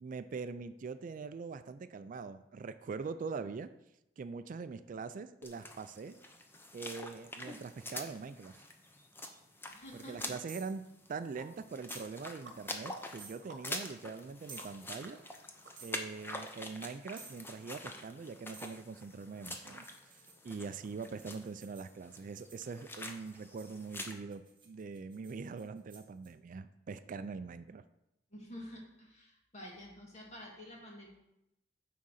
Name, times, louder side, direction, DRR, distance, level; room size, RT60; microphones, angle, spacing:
voice 1, 0.0-3.7 4.2-6.2 6.7-8.5 9.9-10.8 11.1-15.2 15.8-27.8, right 4 dB, 45° right, 11 dB, 0.3 m, -43 dB
sound 1, 5.4-24.1, left 1 dB, 10° left, 0.7 m, -46 dB
voice 2, 9.7-10.3 28.3-31.1, equal, 35° left, -1 dB, 2.0 m, -49 dB
sound 2, 10.5-10.8 11.9-12.1 13.2-13.4 14.5-14.7 15.8-16.0 17.2-17.4 18.5-18.8 19.8-22.7 23.2-26.3, right 4 dB, 25° right, 1.6 m, -54 dB
sound 3, 10.8-16.2, right 2 dB, 70° right, 1.2 m, -58 dB
9.3 x 3.8 x 6.3 m, 0.86 s
head